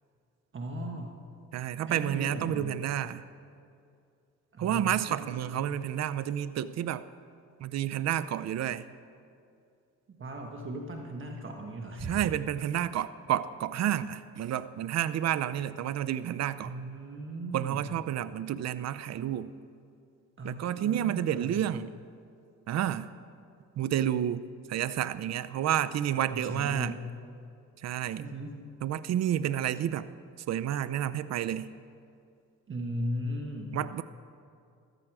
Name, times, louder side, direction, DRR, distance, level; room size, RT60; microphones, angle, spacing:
voice 1, 0.5-1.2 1.9-2.9 4.5-5.7 10.1-12.1 16.6-17.8 20.4-21.6 26.3-27.1 28.2-28.6 32.7-33.8, right 1 dB, 40° right, 2 dB, 1.5 m, -37 dB
voice 2, 1.5-3.2 4.6-7.0 7.6-8.8 12.1-16.7 17.5-19.5 20.4-21.9 22.7-23.1 23.8-24.4 24.7-27.0 27.8-28.3 28.8-30.1 30.5-31.7 33.7-34.0, right 11 dB, 60° right, 15 dB, 0.6 m, -30 dB
14.5 x 13.0 x 4.8 m, 2.4 s
cardioid pair, 90°, 30 cm